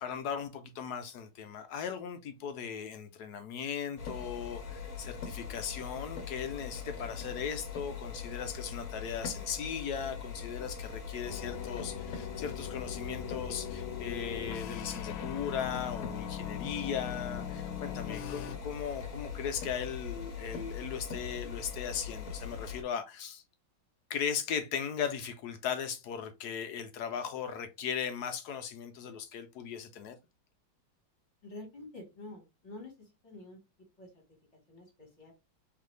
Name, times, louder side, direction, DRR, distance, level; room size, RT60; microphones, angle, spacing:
voice 1, 0.0-23.4 24.1-30.1, left 7 dB, 75° left, 0.9 m, -38 dB
sound 1, 4.0-22.8, left 6 dB, 60° left, 1.1 m, -41 dB
sound 2, 11.2-18.6, left 10 dB, 90° left, 1.4 m, -41 dB
voice 2, 31.4-32.9 33.2-33.6 34.0-34.1 34.7-35.3, left 2 dB, 40° left, 1.5 m, -47 dB
3.9 x 3.2 x 3.1 m
omnidirectional pair, 2.1 m